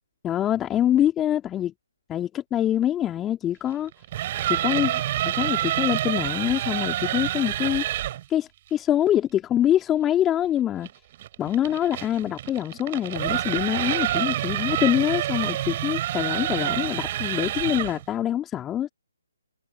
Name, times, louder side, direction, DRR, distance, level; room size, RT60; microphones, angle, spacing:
voice 1, 0.2-1.7 2.1-3.9 4.5-7.8 8.3-10.9 11.4-18.9, left 11 dB, 10° left, 2.6 m, -25 dB
sound 1, 3.9-8.2 10.8-18.0, right 13 dB, 30° right, 7.5 m, -27 dB
figure-of-eight pair, 140°, 0 cm